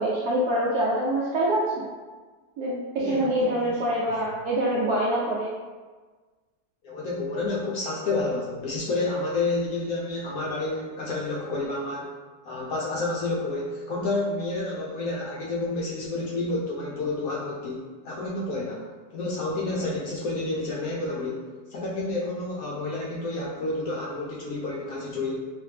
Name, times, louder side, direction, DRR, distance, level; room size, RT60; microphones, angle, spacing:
voice 1, 0.0-1.8 2.6-5.5, right 1 dB, 70° right, -5 dB, 0.9 m, -25 dB
voice 2, 3.0-3.8 4.1-4.2 6.8-12.1 12.4-18.9 19.1-25.4, left 2 dB, 75° left, -4 dB, 0.8 m, -30 dB
3.3 x 2.8 x 3.2 m, 1.4 s
omnidirectional pair, 2.0 m